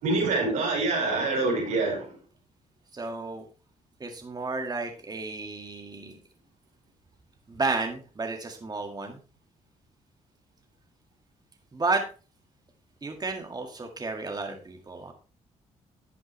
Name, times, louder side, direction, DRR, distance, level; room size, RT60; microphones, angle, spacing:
voice 1, 0.0-2.2, right 3 dB, 90° right, 4.9 m, -26 dB
voice 2, 2.9-3.4 4.0-6.2 7.5-9.2 11.7-12.0 13.0-15.1, right 3 dB, 30° right, 1.9 m, -32 dB
11.5 x 7.8 x 3.2 m
supercardioid pair, 65°, 13 cm